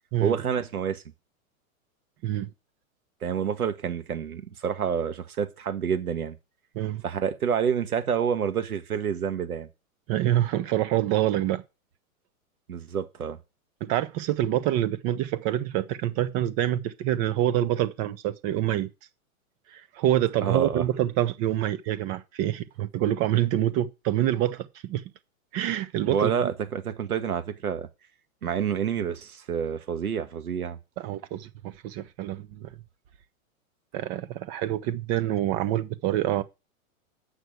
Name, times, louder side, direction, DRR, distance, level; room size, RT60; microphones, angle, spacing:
voice 1, 0.2-1.0 3.2-6.4 7.0-9.7 12.7-13.4 20.4-20.8 26.1-27.9 28.4-30.8, right 7 dB, 90° right, 1.8 m, -28 dB
voice 2, 10.1-11.6 13.8-18.9 19.7-25.0 25.5-26.5 31.0-32.7 33.9-36.4, right 13 dB, 35° right, 0.8 m, -26 dB
8.0 x 6.2 x 8.0 m
hypercardioid pair, 125°, 42 cm